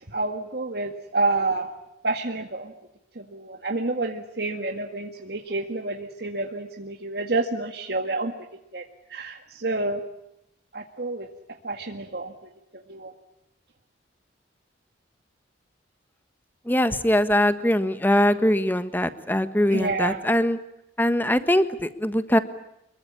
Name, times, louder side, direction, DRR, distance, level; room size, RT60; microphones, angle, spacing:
voice 1, 0.1-1.7 2.0-2.7 3.2-8.3 8.7-8.8 9.1-10.0 10.7-11.3 11.6-12.3 12.9-13.1 19.7-20.2, right 2 dB, 60° right, 4 dB, 1.9 m, -28 dB
voice 2, 16.7-20.6 21.0-22.4, left 1 dB, 10° left, 11 dB, 1.4 m, -22 dB
26.0 x 22.5 x 8.6 m, 0.85 s
head